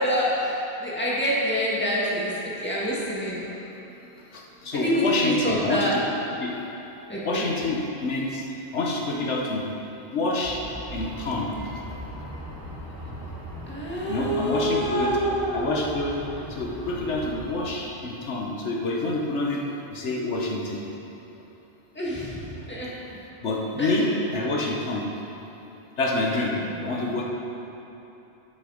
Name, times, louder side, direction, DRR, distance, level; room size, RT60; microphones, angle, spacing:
voice 1, 0.0-3.4 4.7-5.9 7.1-7.4 13.7-15.7 21.9-22.9 23.8-23.9 26.5-27.1, equal, 10° left, -7 dB, 2.0 m, -27 dB
voice 2, 4.3-6.0 6.4-6.5 7.2-8.5 8.7-9.7 10.0-10.6 10.9-11.6 14.1-15.2 15.5-16.2 16.5-19.6 19.9-20.8 23.4-25.1 26.0-26.6 26.8-27.2, left 2 dB, 80° left, -1 dB, 1.3 m, -27 dB
sound 1, 10.4-17.5, right 1 dB, 20° right, 1.1 m, -39 dB
12.0 x 6.7 x 5.0 m, 3.0 s
omnidirectional pair, 1.2 m